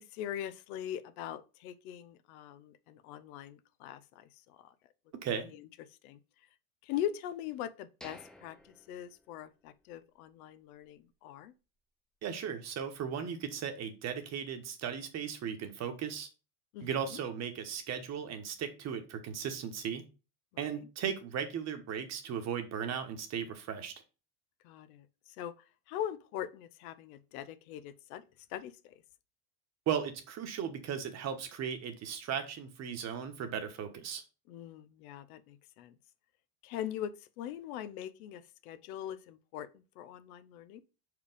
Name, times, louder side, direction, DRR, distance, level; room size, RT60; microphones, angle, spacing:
voice 1, 0.0-4.7 5.5-6.2 6.8-11.5 16.7-17.2 20.5-20.8 24.6-25.1 25.4-25.5 25.9-29.0 34.5-35.9 36.6-40.8, left 10 dB, 70° left, 0.9 m, -42 dB
voice 2, 5.2-5.5 12.2-16.3 16.8-20.0 20.6-23.9 29.9-34.2, right 8 dB, 35° right, 1.3 m, -36 dB
sound 1, 8.0-9.9 10.3-10.4 10.9-11.1, left 1 dB, ahead, 0.4 m, -55 dB
5.0 x 4.8 x 5.1 m
supercardioid pair, 130°, 45 cm